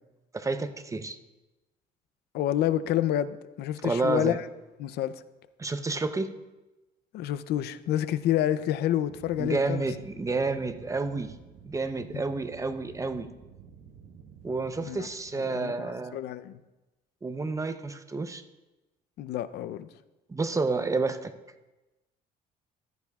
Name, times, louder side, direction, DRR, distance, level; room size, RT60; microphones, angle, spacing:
voice 1, 0.3-1.2 3.8-4.4 5.6-6.3 9.4-11.3 11.6-13.3 14.4-16.2 17.2-18.4 20.3-21.3, right 3 dB, 20° right, 0.7 m, -30 dB
voice 2, 2.3-4.4 4.8-5.2 7.1-9.9 14.8-15.1 15.5-16.6 19.2-19.9, left 12 dB, 75° left, 0.6 m, -28 dB
sound 1, 9.1-15.4, right 7 dB, 75° right, 1.1 m, -51 dB
14.5 x 13.5 x 2.4 m
cardioid pair, 110°, 17 cm